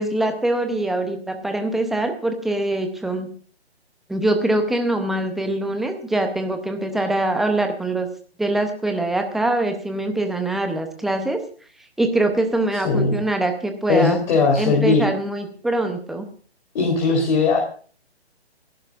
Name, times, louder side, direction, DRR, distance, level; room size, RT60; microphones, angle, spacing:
voice 1, 0.0-3.3 4.1-8.1 8.4-11.4 12.0-14.2 14.6-16.3, right 2 dB, ahead, 5 dB, 0.6 m, -23 dB
voice 2, 12.8-13.2 13.9-15.1 16.7-17.6, left 4 dB, 40° left, 1 dB, 3.5 m, -19 dB
29.0 x 11.5 x 2.4 m, 0.42 s
hypercardioid pair, 145°, 33 cm